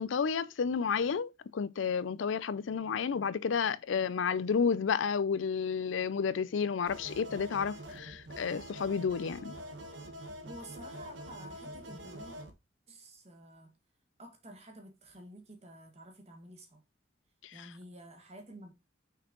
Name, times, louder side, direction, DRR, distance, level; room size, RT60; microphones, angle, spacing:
voice 1, 0.0-9.6, left 6 dB, 75° left, 0.4 m, -31 dB
sound 1, 6.9-12.5, equal, 70° right, 1.2 m, -45 dB
voice 2, 10.4-12.4 12.9-13.8 14.2-16.8 17.5-18.7, equal, 35° right, 1.6 m, -50 dB
6.1 x 4.6 x 3.8 m
head